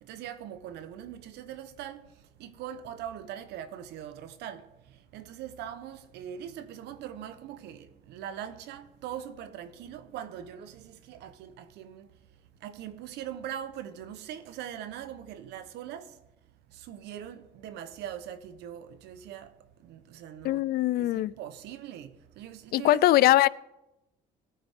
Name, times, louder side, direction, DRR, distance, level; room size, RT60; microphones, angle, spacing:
voice 1, 0.0-2.1 2.4-4.7 5.1-12.1 12.6-16.2 16.7-19.5 19.8-20.6 21.0-23.0, right 10 dB, 85° right, 1.0 m, -41 dB
voice 2, 20.4-21.3 22.7-23.5, left 15 dB, 65° left, 0.4 m, -22 dB
20.5 x 9.5 x 3.7 m
cardioid pair, 110°, 17 cm